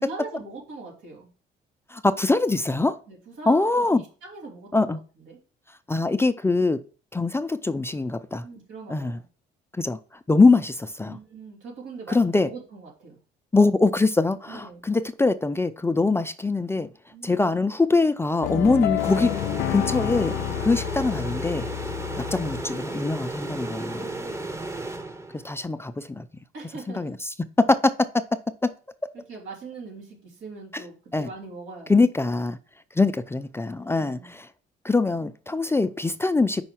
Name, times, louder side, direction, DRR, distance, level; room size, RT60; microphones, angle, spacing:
voice 1, 0.0-1.3 3.1-5.0 5.3-5.4 8.4-9.2 11.0-13.2 14.5-14.8 17.1-17.4 24.0-24.5 26.5-27.1 29.1-32.0 34.0-34.3, right 3 dB, 85° right, 3.0 m, -41 dB
voice 2, 1.9-3.0 3.5-4.0 4.7-5.0 5.9-6.8 7.1-8.5 8.9-9.2 9.7-10.0 10.3-11.2 12.1-12.5 13.5-16.9 17.2-19.4 19.7-21.7 22.2-24.1 25.3-26.3 26.9-27.3 27.7-28.2 28.6-28.7 30.7-30.8 31.1-31.3 31.9-32.6 32.9-34.5 34.8-36.6, left 3 dB, 15° left, 0.4 m, -23 dB
sound 1, 18.4-22.9, left 17 dB, 85° left, 0.4 m, -30 dB
sound 2, 19.0-25.6, right 2 dB, 15° right, 0.8 m, -34 dB
5.5 x 4.2 x 5.9 m
cardioid pair, 100°, 19 cm